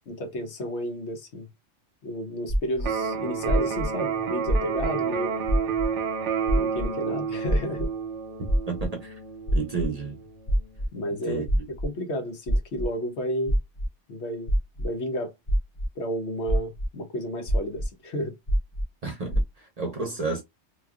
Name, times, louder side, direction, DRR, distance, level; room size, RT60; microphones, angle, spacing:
voice 1, 0.1-1.5 2.0-5.3 6.5-7.9 10.9-13.5 14.1-15.3 16.0-18.3, equal, 70° left, 1.1 m, -32 dB
sound 1, 2.5-2.8 3.5-3.8 4.5-4.8 5.5-5.8 6.5-6.8 7.5-7.8 8.5-8.8 9.5-9.8 10.5-10.8 11.5-11.8 12.5-12.8 13.5-13.8 14.5-14.8 15.5-15.8 16.5-16.8 17.5-17.8 18.5-18.8 19.3-19.4, equal, 50° left, 0.4 m, -23 dB
Electric guitar, 2.8-10.8, right 6 dB, 85° right, 0.9 m, -30 dB
voice 2, 8.7-9.1 9.5-10.2 11.3-11.4 19.0-20.4, right 4 dB, 45° right, 0.6 m, -31 dB
3.0 x 2.3 x 2.3 m
omnidirectional pair, 1.2 m